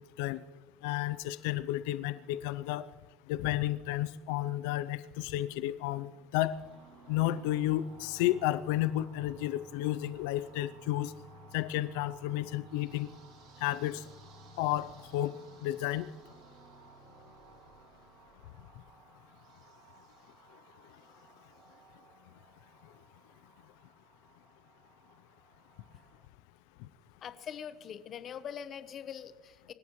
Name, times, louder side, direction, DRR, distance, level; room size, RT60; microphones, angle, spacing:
voice 1, 0.8-2.9 3.3-6.6 7.1-11.1 11.5-13.1 13.6-14.1 14.6-15.3 15.6-16.1, left 14 dB, 85° left, 14 dB, 0.6 m, -32 dB
sound 1, 6.5-26.3, right 2 dB, 55° right, 3.3 m, -56 dB
voice 2, 27.2-29.7, left 8 dB, 35° left, 11 dB, 1.0 m, -43 dB
26.5 x 15.0 x 3.2 m, 1.3 s
cardioid pair, 155°, 0 cm